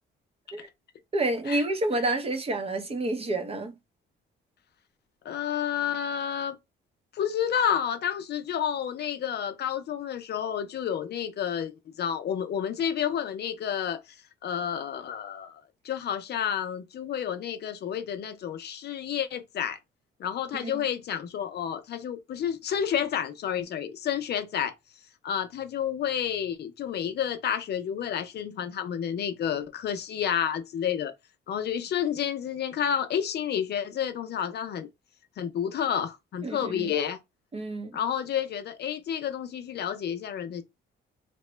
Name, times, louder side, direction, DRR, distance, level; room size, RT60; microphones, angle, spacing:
voice 1, 1.1-3.7 20.6-20.9 36.4-36.9 37.5-38.0, right 2 dB, 30° right, 0.6 m, -29 dB
voice 2, 5.2-6.6 7.1-14.2 14.4-19.8 20.2-24.7 25.2-31.1 31.5-34.9 35.4-37.2 37.9-40.6, left 9 dB, 55° left, 0.5 m, -30 dB
2.9 x 2.1 x 3.1 m
cardioid pair, 90°, 20 cm